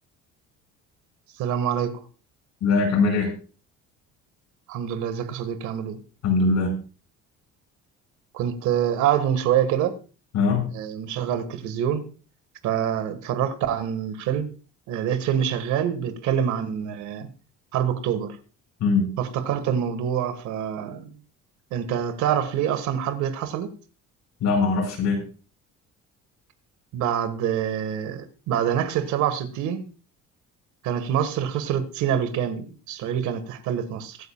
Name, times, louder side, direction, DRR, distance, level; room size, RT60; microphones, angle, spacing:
voice 1, 1.4-2.0 4.7-6.0 8.3-10.0 10.7-12.1 12.6-14.5 14.9-17.3 17.7-18.4 19.2-21.1 21.7-23.7 26.9-29.9 30.8-34.2, right 9 dB, 80° right, 1.8 m, -26 dB
voice 2, 2.6-3.3 6.2-6.7 10.3-10.7 18.8-19.1 24.4-25.2, left 4 dB, 65° left, 5.9 m, -21 dB
23.0 x 9.0 x 2.4 m
cardioid pair, 130°, 29 cm